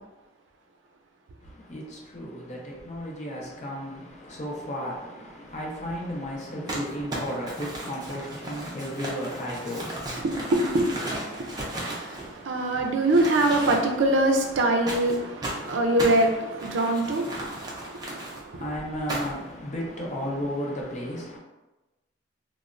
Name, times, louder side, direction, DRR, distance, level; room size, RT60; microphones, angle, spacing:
voice 1, 1.4-10.4 18.6-21.4, equal, 40° left, 0.6 m, -34 dB
Crumpling crinkling, 6.7-12.7 13.1-14.1 14.9-18.4 19.1-19.5, right 1 dB, 20° right, 0.4 m, -35 dB
voice 2, 10.5-18.6, right 1 dB, 85° right, 0.4 m, -24 dB
3.0 x 2.0 x 2.4 m
head